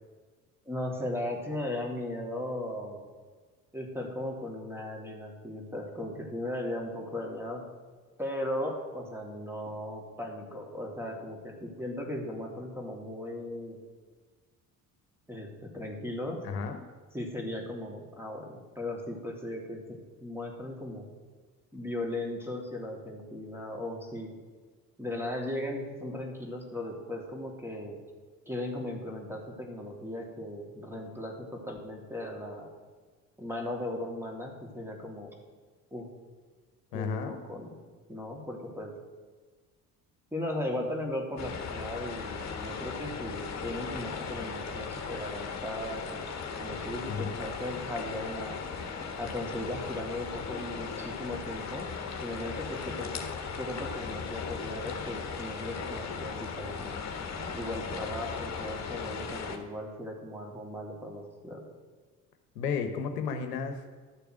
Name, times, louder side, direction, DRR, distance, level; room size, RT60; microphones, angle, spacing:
voice 1, 0.6-3.0 3.7-7.6 8.2-13.8 15.3-16.4 17.1-21.1 21.7-24.3 25.0-28.0 28.5-32.7 33.4-35.3 35.9-36.1 36.9-37.8 38.1-38.9 40.3-46.3 46.6-48.6 49.2-51.9 52.2-53.2 53.6-57.0 57.5-61.6, left 1 dB, 5° right, 0 dB, 3.2 m, -37 dB
voice 2, 16.4-16.8 36.9-37.4 47.1-47.3 62.5-63.8, left 6 dB, 80° left, 7 dB, 1.1 m, -33 dB
sound 1, 41.4-59.6, left 5 dB, 35° left, 1.8 m, -37 dB
13.0 x 6.8 x 6.4 m, 1.4 s
hypercardioid pair, 60°, 47 cm